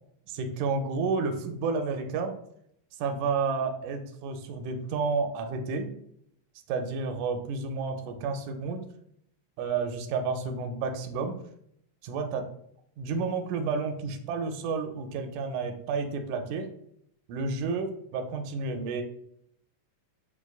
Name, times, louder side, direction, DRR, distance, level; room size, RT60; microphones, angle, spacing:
voice 1, 0.3-2.3 3.0-5.9 6.7-8.8 9.6-11.4 12.0-12.4 13.0-16.7 17.3-19.0, right 4 dB, 85° right, 6 dB, 2.0 m, -31 dB
6.9 x 2.5 x 2.3 m, 0.70 s
omnidirectional pair, 3.4 m